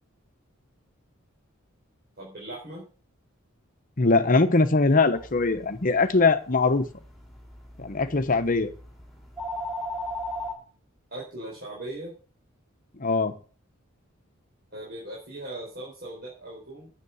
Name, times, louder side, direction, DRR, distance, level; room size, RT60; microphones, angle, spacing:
voice 1, 2.2-2.8 11.1-12.1 14.7-16.9, right 1 dB, 50° right, 4.2 m, -39 dB
voice 2, 4.0-6.9 7.8-8.7 13.0-13.4, left 3 dB, 40° left, 1.0 m, -21 dB
sound 1, 5.1-10.5, left 1 dB, ahead, 3.7 m, -38 dB
9.7 x 7.6 x 7.1 m
head